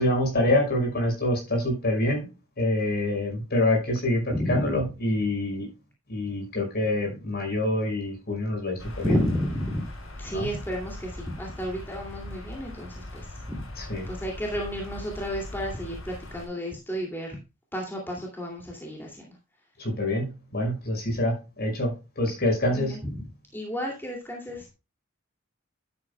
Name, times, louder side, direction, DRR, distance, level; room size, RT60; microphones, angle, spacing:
voice 1, 0.0-2.3 2.6-5.7 6.1-9.1 10.3-10.5 13.8-14.1 19.8-23.0, left 1 dB, 50° left, 2 dB, 5.4 m, -26 dB
voice 2, 4.3-4.8 9.0-9.9 10.2-13.6 14.1-17.4 17.7-19.3 21.1-21.2 22.6-23.0 23.5-24.7, equal, 10° left, -1 dB, 2.4 m, -31 dB
sound 1, 8.8-16.5, left 1 dB, 75° left, 5.9 m, -40 dB
11.5 x 8.8 x 2.2 m, 0.28 s
head